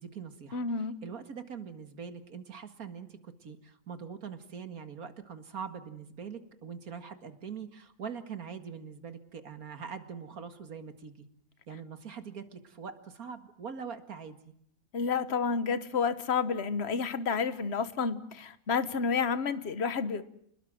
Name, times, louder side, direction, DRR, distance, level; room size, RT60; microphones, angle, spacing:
voice 1, 0.0-11.3 11.7-14.5, right 6 dB, 85° right, 9 dB, 2.4 m, -43 dB
voice 2, 0.5-1.0 14.9-20.2, left 5 dB, 50° left, 14 dB, 1.4 m, -30 dB
28.5 x 20.5 x 7.7 m, 0.68 s
omnidirectional pair, 1.5 m